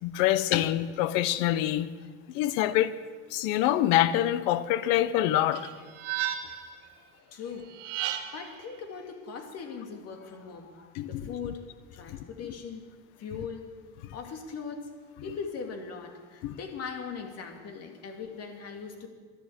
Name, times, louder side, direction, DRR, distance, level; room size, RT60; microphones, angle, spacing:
voice 1, 0.0-1.9 2.3-2.9 3.3-5.7 10.9-11.2 16.4-16.6, left 13 dB, 70° left, 0.9 m, -25 dB
sound 1, 5.5-6.7 7.7-8.6, right 12 dB, 70° right, 1.5 m, -34 dB
voice 2, 6.9-11.6 11.9-12.8 13.2-13.7 14.1-14.9 15.2-19.1, left 5 dB, 45° left, 2.5 m, -40 dB
12.0 x 11.0 x 8.1 m
supercardioid pair, 115°, 34 cm